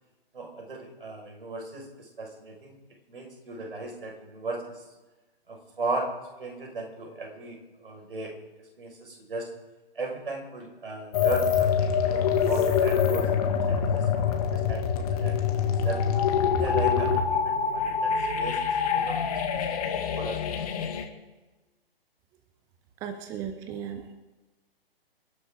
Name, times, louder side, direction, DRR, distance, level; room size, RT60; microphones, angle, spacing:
voice 1, 0.3-2.8 3.1-4.6 5.5-6.1 6.4-8.3 8.8-9.5 10.0-13.2 13.7-14.9 15.2-15.5 15.8-16.0 16.6-18.6 18.9-19.9 20.2-20.4 20.8-20.9, right 3 dB, 65° right, 1 dB, 5.7 m, -36 dB
sound 1, 11.1-21.0, left 7 dB, 40° left, 2.2 m, -25 dB
voice 2, 23.0-24.1, right 8 dB, 10° right, 9 dB, 0.6 m, -36 dB
27.5 x 12.0 x 3.8 m, 1.2 s
figure-of-eight pair, 130°, 30 cm